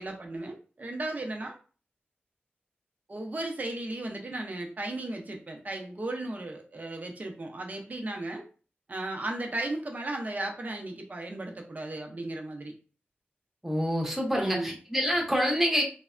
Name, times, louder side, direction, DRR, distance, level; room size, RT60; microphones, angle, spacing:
voice 1, 0.0-1.6 3.1-8.4 8.9-12.8 14.3-14.7, right 2 dB, 45° right, 2 dB, 0.6 m, -35 dB
voice 2, 13.6-15.8, equal, 5° right, -1 dB, 0.8 m, -26 dB
3.3 x 2.1 x 2.5 m, 0.37 s
wide cardioid pair, 105°, 4 cm